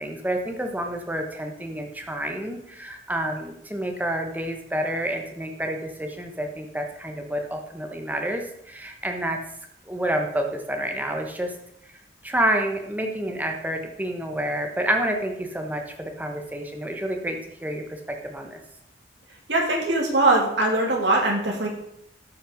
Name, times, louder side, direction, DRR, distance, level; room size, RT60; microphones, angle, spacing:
voice 1, 0.0-9.4 9.8-11.5 11.8-11.9 12.2-18.6, right 1 dB, 10° right, 3 dB, 1.1 m, -29 dB
voice 2, 19.5-21.7, right 2 dB, 70° right, -1 dB, 2.7 m, -21 dB
12.5 x 5.7 x 5.2 m, 0.74 s
head